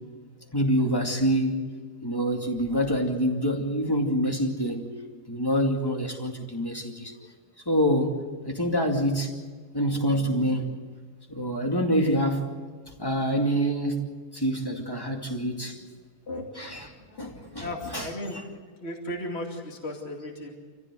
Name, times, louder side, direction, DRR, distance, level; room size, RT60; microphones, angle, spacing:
voice 1, 0.5-1.6 2.0-4.9 5.3-7.1 7.7-8.2 8.4-9.3 9.7-10.7 11.3-12.5 12.9-15.8 16.6-18.4, equal, 15° left, 2 dB, 2.4 m, -26 dB
voice 2, 17.6-18.4 18.8-20.5, left 1 dB, 40° left, 1 dB, 2.9 m, -35 dB
27.5 x 15.0 x 7.8 m, 1.5 s
omnidirectional pair, 1.7 m